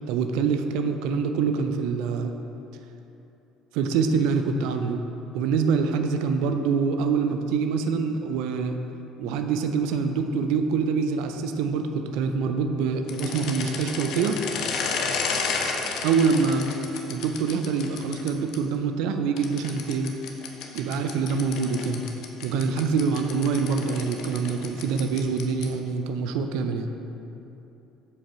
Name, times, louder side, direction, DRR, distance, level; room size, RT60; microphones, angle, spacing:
voice 1, 0.1-2.3 3.7-5.0 5.3-8.8 9.2-14.4 16.0-16.7 17.1-20.1 20.7-22.0 22.4-26.9, right 5 dB, 65° right, 7 dB, 0.4 m, -25 dB
sound 1, 13.1-18.6 19.4-25.8, left 5 dB, 60° left, 0.7 m, -32 dB
6.9 x 5.1 x 4.7 m, 2.9 s
hypercardioid pair, 55°, 0 cm